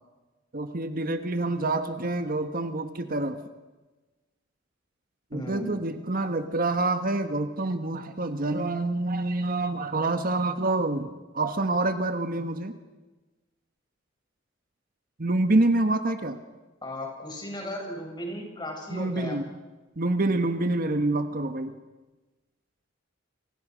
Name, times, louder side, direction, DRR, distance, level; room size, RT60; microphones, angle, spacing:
voice 1, 0.5-3.4 5.3-12.8 15.2-16.4 18.9-19.5 20.0-21.7, right 2 dB, 50° right, 8 dB, 1.5 m, -27 dB
voice 2, 5.3-5.8 16.8-19.4, left 1 dB, 25° left, 1 dB, 7.4 m, -36 dB
29.5 x 25.5 x 6.4 m, 1.2 s
head